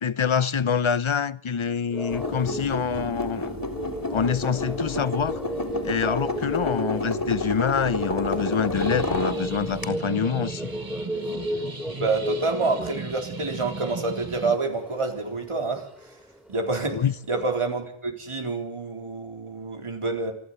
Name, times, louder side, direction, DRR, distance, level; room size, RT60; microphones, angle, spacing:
voice 1, 0.0-3.5 4.1-5.4 5.8-10.7 16.9-17.1, left 7 dB, 70° left, 0.9 m, -26 dB
sound 1, 1.9-17.4, equal, 5° right, 3.6 m, -36 dB
sound 2, 2.1-9.8, left 1 dB, 45° left, 3.7 m, -30 dB
sound 3, 8.7-14.5, right 4 dB, 45° right, 1.7 m, -37 dB
voice 2, 11.9-15.9 16.5-17.0 17.3-20.3, right 3 dB, 80° right, 4.2 m, -27 dB
27.5 x 12.0 x 9.5 m
wide cardioid pair, 40°, 50 cm